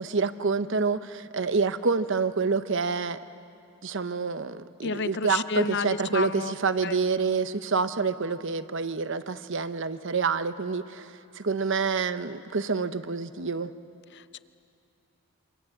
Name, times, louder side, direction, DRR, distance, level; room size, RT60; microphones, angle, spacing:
voice 1, 0.0-3.2 3.8-13.7, right 4 dB, 55° right, 0.8 m, -27 dB
voice 2, 4.8-6.5 6.8-7.0 14.1-14.4, left 4 dB, 50° left, 0.6 m, -31 dB
27.0 x 25.5 x 7.7 m
head